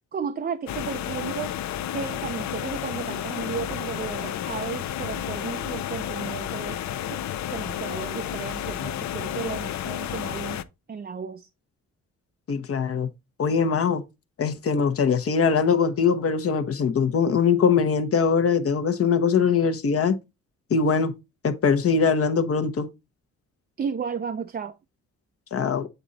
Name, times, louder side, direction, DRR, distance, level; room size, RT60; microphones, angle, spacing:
voice 1, 0.1-1.5 1.9-10.6 10.9-11.5 23.8-24.7, right 6 dB, 30° right, 0.5 m, -34 dB
sound 1, 0.7-10.6, left 11 dB, 65° left, 0.6 m, -31 dB
voice 2, 12.5-13.1 13.4-14.0 14.4-20.1 20.7-21.1 21.4-22.9 25.5-25.9, left 6 dB, 50° left, 1.0 m, -22 dB
8.1 x 3.8 x 4.0 m
cardioid pair, 90°, 30 cm